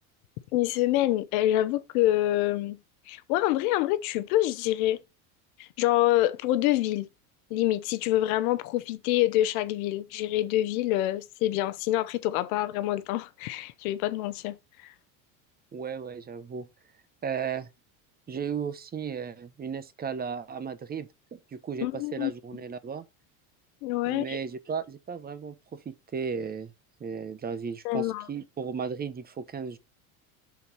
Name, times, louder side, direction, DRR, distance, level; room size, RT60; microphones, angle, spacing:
voice 1, 0.5-2.8 3.1-5.0 5.6-7.1 7.5-14.6 14.8-14.9 21.8-22.3 23.8-24.4 27.8-28.3, left 15 dB, 70° left, 0.8 m, -26 dB
voice 2, 15.7-16.7 17.2-17.7 18.3-23.0 24.1-26.7 27.0-29.8, right 6 dB, 20° right, 0.8 m, -35 dB
6.3 x 4.1 x 5.6 m
supercardioid pair, 100°, 44 cm